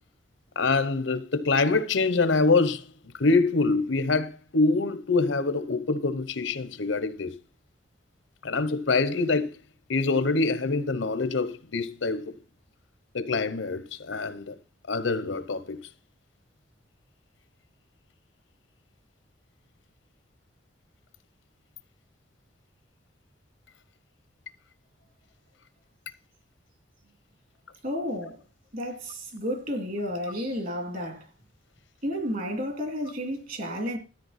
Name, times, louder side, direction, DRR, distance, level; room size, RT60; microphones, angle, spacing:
voice 1, 0.6-2.9 3.2-7.3 8.4-9.6 9.9-12.4 13.1-14.5 14.9-15.8, left 3 dB, 75° left, 0.9 m, -25 dB
voice 2, 27.8-28.4 28.7-31.3 32.0-34.0, equal, 45° right, 2.6 m, -31 dB
13.0 x 8.9 x 4.2 m
head